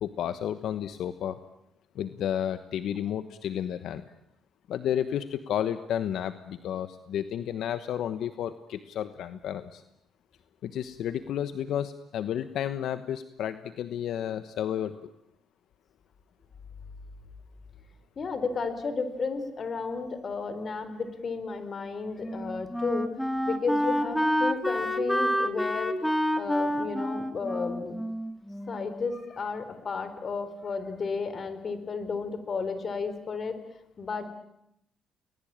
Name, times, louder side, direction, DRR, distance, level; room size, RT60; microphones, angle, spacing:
voice 1, 0.0-1.4 1.9-4.1 4.7-9.8 10.6-14.9, left 10 dB, 75° left, 12 dB, 1.2 m, -32 dB
voice 2, 18.2-23.1 23.4-28.0 28.7-33.6 34.0-34.3, left 4 dB, 45° left, 11 dB, 4.0 m, -33 dB
Wind instrument woodwind instrument, 21.7-29.0, equal, 5° left, 2.6 m, -29 dB
30.0 x 20.5 x 8.8 m, 0.79 s
cardioid pair, 90°, 0 cm